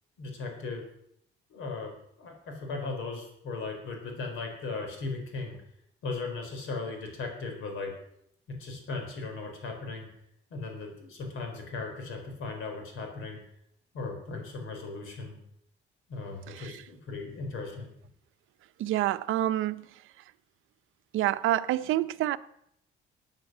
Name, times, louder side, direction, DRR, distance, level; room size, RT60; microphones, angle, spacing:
voice 1, 0.2-0.9 1.5-5.6 6.0-7.9 8.5-10.1 10.5-13.4 13.9-15.4 16.1-17.9, left 3 dB, 90° left, 4.3 m, -37 dB
voice 2, 16.5-16.8 18.8-20.2 21.1-22.4, right 14 dB, 85° right, 0.7 m, -28 dB
16.0 x 9.2 x 6.1 m
cardioid pair, 90°, 20 cm